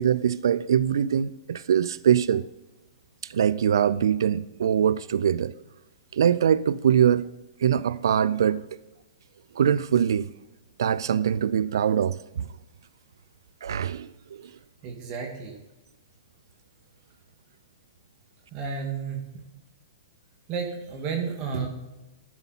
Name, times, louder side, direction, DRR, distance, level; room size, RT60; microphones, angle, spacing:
voice 1, 0.0-2.4 3.3-5.5 6.1-7.2 7.6-8.6 9.6-10.3 10.8-12.5 13.6-14.5, right 8 dB, 75° right, 0.4 m, -23 dB
voice 2, 14.8-15.6 18.5-19.4 20.5-21.7, right 5 dB, 35° right, 1.9 m, -32 dB
12.0 x 7.0 x 4.1 m
hypercardioid pair, 125°, 2 cm